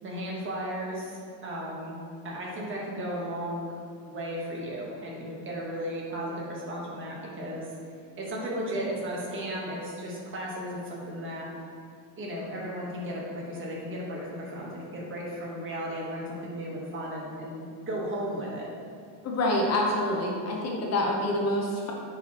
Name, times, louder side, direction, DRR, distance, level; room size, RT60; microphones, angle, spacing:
voice 1, 0.0-2.0 2.2-3.7 4.1-7.7 8.2-11.4 12.2-18.7, equal, 25° right, -3 dB, 1.2 m, -35 dB
voice 2, 19.2-21.9, left 1 dB, 30° left, -1 dB, 0.8 m, -27 dB
8.8 x 4.7 x 2.9 m, 2.3 s
cardioid pair, 165°, 50 cm